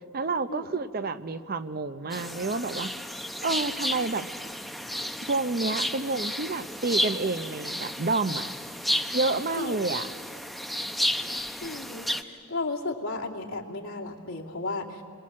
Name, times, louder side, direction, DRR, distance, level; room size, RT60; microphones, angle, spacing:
voice 1, 0.1-2.9 3.4-4.3 4.9-8.4 9.1-10.1, right 3 dB, 45° right, 12 dB, 0.7 m, -29 dB
sound 1, 2.1-12.2, equal, ahead, 0.7 m, -32 dB
voice 2, 11.6-15.0, left 3 dB, 75° left, -2 dB, 2.6 m, -34 dB
29.0 x 22.5 x 7.5 m, 2.3 s
head